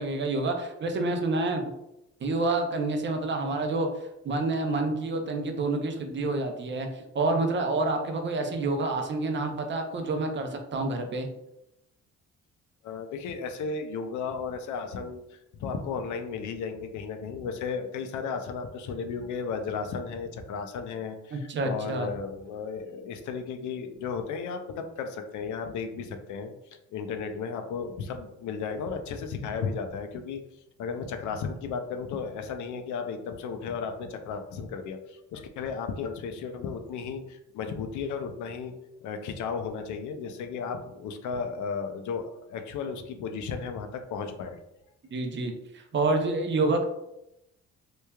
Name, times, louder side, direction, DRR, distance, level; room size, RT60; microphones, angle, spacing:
voice 1, 0.0-1.6 2.2-3.9 4.2-11.3 21.3-22.1 45.1-46.8, right 2 dB, 40° right, 5 dB, 0.5 m, -28 dB
voice 2, 12.8-26.5 26.9-30.4 30.8-38.7 39.0-44.6, left 5 dB, 75° left, 6 dB, 0.4 m, -34 dB
3.0 x 2.2 x 2.2 m, 0.86 s
cardioid pair, 90°, 30 cm